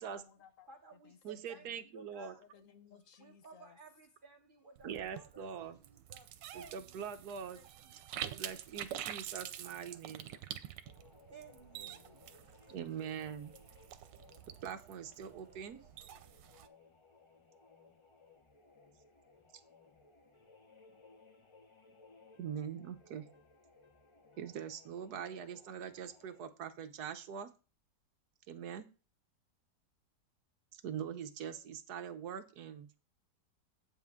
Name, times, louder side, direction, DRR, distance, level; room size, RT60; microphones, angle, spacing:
voice 1, 0.0-0.7 1.0-1.7 2.4-3.8 11.7-12.2, left 7 dB, 55° left, 9 dB, 1.1 m, -61 dB
voice 2, 0.7-2.4 3.2-7.2 7.5-8.6 9.2-10.0 10.3-10.4 11.0-12.9, right 3 dB, 35° right, 4 dB, 1.1 m, -58 dB
voice 3, 1.2-2.3 4.8-5.8 6.5-7.6 8.2-10.3 12.7-13.5 14.6-15.8 22.4-23.2 24.4-27.5 28.5-28.9 30.8-32.9, right 8 dB, 65° right, 9 dB, 1.3 m, -43 dB
sound 1, 4.8-16.7, right 11 dB, 90° right, 1.4 m, -47 dB
sound 2, 10.8-26.5, left 3 dB, 25° left, 0.6 m, -63 dB
8.3 x 7.4 x 3.6 m, 0.34 s
omnidirectional pair, 1.9 m